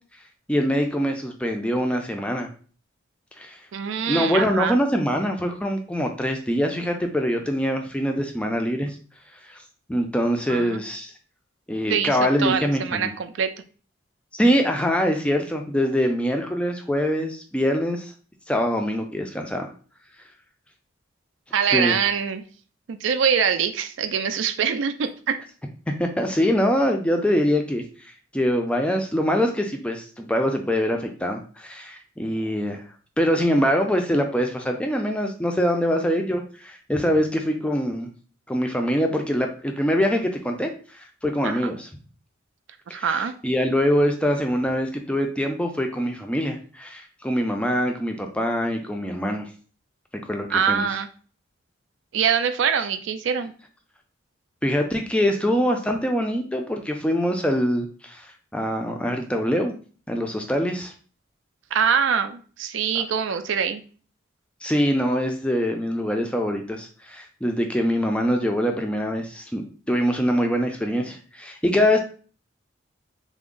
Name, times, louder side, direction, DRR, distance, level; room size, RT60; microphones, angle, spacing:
voice 1, 0.5-2.5 3.4-3.6 4.1-9.0 9.4-9.6 9.9-11.1 11.7-13.1 14.4-18.1 18.5-19.7 21.7-22.0 26.0-32.8 33.2-38.1 38.5-41.9 42.9-43.2 43.4-49.5 50.3-50.9 54.6-59.7 60.1-60.9 62.9-63.0 64.6-69.6 69.9-72.0, equal, 5° left, 3 dB, 0.4 m, -24 dB
voice 2, 3.7-4.8 10.5-10.8 11.9-13.5 21.5-22.4 22.9-25.4 41.4-41.7 42.9-43.3 50.5-51.1 52.1-53.5 61.7-63.8, right 7 dB, 70° right, 9 dB, 0.4 m, -24 dB
3.5 x 2.0 x 3.7 m, 0.40 s
head